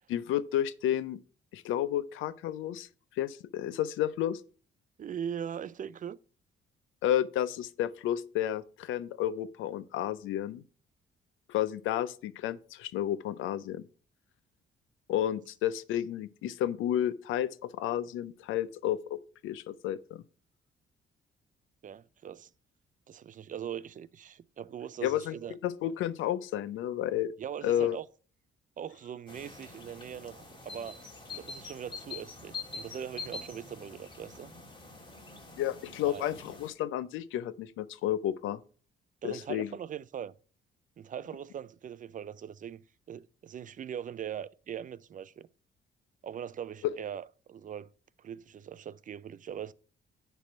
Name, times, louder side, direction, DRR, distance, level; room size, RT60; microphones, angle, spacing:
voice 1, 0.1-1.2 1.5-2.9 3.2-4.4 7.0-10.6 11.5-13.8 15.1-20.2 25.0-25.3 25.6-27.3 27.6-28.0 35.6-38.6 39.2-39.7 46.8-46.9, left 11 dB, 85° left, 0.5 m, -31 dB
voice 2, 5.0-6.2 21.8-22.5 23.1-25.6 27.4-28.0 28.8-31.0 31.3-34.5 36.0-36.3 39.2-40.3 41.0-45.5 46.2-47.9 48.2-49.7, right 9 dB, 40° right, 0.4 m, -41 dB
sound 1, 29.3-36.7, left 4 dB, 25° left, 2.2 m, -45 dB
10.0 x 3.4 x 6.0 m
cardioid pair, 90°, 20 cm